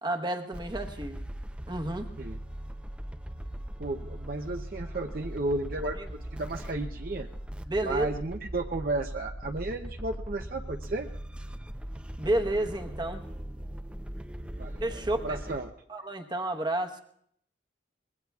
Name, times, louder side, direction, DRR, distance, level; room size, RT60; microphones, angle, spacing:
voice 1, 0.0-1.2 1.7-2.1 6.0-6.1 7.7-8.1 12.2-13.2 14.8-15.4 15.9-17.0, right 1 dB, 25° right, 5 dB, 1.0 m, -30 dB
sound 1, 0.5-15.6, right 1 dB, 5° right, 0.5 m, -40 dB
voice 2, 3.8-7.3 7.8-11.1 14.6-15.7, right 2 dB, 50° right, 4 dB, 0.6 m, -33 dB
24.5 x 21.0 x 2.3 m, 0.67 s
head